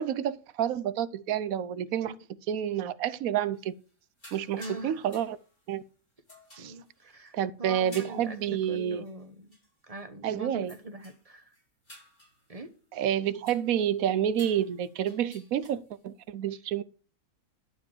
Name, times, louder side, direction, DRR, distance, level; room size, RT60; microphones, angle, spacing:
voice 1, 0.0-2.1 2.5-3.7 4.3-5.4 5.7-5.8 6.6-6.7 7.3-9.0 10.2-10.7 12.9-16.8, right 10 dB, 75° right, 1.1 m, -29 dB
sound 1, 3.5-3.9 4.2-5.8 6.3-7.3 7.9-9.2 9.5-9.7 10.0-10.1 10.7-11.3 11.5-13.9 14.3-16.0, equal, 35° left, 5.0 m, -53 dB
voice 2, 4.6-5.0 6.6-9.5 9.9-11.5 12.5-12.7 16.5-16.6, right 1 dB, 30° right, 1.0 m, -42 dB
12.0 x 4.7 x 7.3 m
omnidirectional pair, 1.5 m